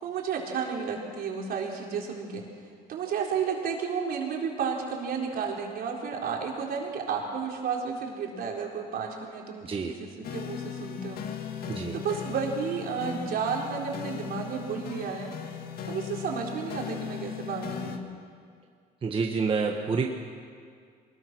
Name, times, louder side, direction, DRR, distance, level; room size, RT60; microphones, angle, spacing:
voice 1, 0.0-2.4 2.9-11.2 11.9-15.3 15.9-18.1, right 6 dB, 65° right, -1 dB, 4.4 m, -32 dB
voice 2, 9.6-9.9 11.7-12.0 19.0-20.1, right 5 dB, 30° right, 1 dB, 1.5 m, -28 dB
sound 1, 10.2-18.0, left 8 dB, 65° left, 1.9 m, -38 dB
23.5 x 21.0 x 6.3 m, 2.1 s
cardioid pair, 110°, 17 cm